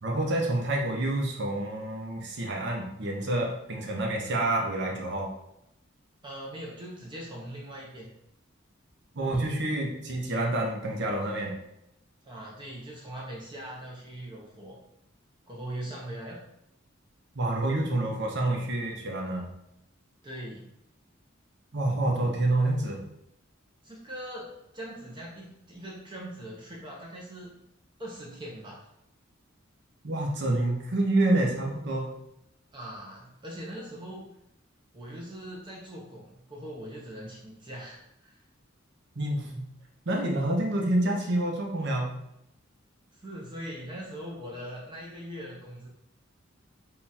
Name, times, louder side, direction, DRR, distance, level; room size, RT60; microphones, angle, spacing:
voice 1, 0.0-5.3 9.1-11.6 17.3-19.5 21.7-23.0 30.0-32.2 39.1-39.7 40.1-42.2, right 1 dB, 60° right, 0 dB, 0.8 m, -28 dB
voice 2, 6.2-8.1 12.2-14.8 15.5-16.4 20.2-20.7 23.8-27.6 28.0-28.8 32.7-34.2 34.9-38.4 43.1-45.9, right 1 dB, 25° right, -3 dB, 0.6 m, -41 dB
3.8 x 2.4 x 4.1 m, 0.80 s
head